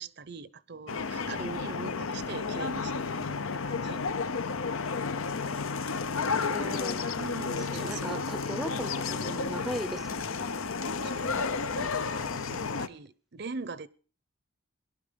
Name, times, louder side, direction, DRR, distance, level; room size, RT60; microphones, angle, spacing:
voice 1, 0.0-4.0 6.4-6.9 7.1-8.3 11.0-13.9, right 4 dB, 50° right, 0.7 m, -42 dB
sound 1, 0.9-12.9, left 4 dB, 75° left, 0.8 m, -32 dB
voice 2, 6.5-7.1 7.7-10.6 11.8-12.0, equal, ahead, 0.6 m, -38 dB
18.0 x 12.0 x 5.2 m
head